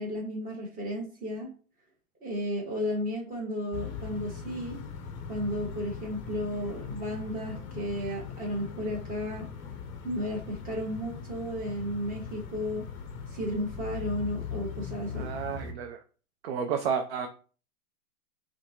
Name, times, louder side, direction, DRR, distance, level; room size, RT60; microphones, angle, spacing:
voice 1, 0.0-1.5 2.2-4.8 5.3-9.5 10.0-12.8 13.3-15.3, equal, 20° right, -1 dB, 1.6 m, -33 dB
sound 1, 3.7-15.7, left 6 dB, 25° left, 0.7 m, -40 dB
voice 2, 15.2-16.0 16.4-17.3, right 6 dB, 45° right, 6 dB, 0.6 m, -31 dB
5.6 x 2.6 x 2.9 m, 0.38 s
hypercardioid pair, 125°, 44 cm